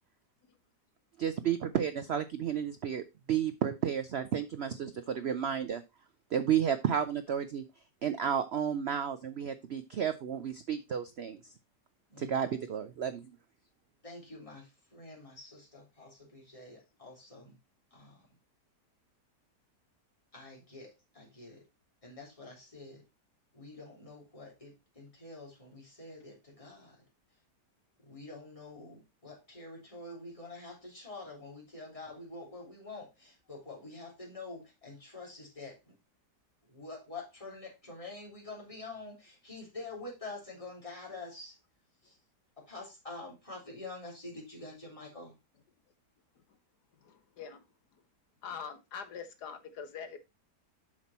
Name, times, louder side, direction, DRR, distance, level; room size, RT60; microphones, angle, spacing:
voice 1, 1.2-5.8 6.3-7.6 8.0-11.4 12.2-13.3, right 8 dB, 80° right, 11 dB, 0.5 m, -32 dB
voice 2, 12.1-12.7 14.0-17.6 17.9-18.2 20.3-21.6 22.0-23.0 23.5-27.0 28.0-35.9 36.7-41.6 42.0-42.1 42.6-45.4, left 3 dB, 20° left, -3 dB, 3.8 m, -47 dB
voice 3, 47.0-47.6 48.4-50.2, left 7 dB, 70° left, 9 dB, 1.6 m, -43 dB
7.5 x 6.0 x 4.1 m, 0.24 s
omnidirectional pair, 1.8 m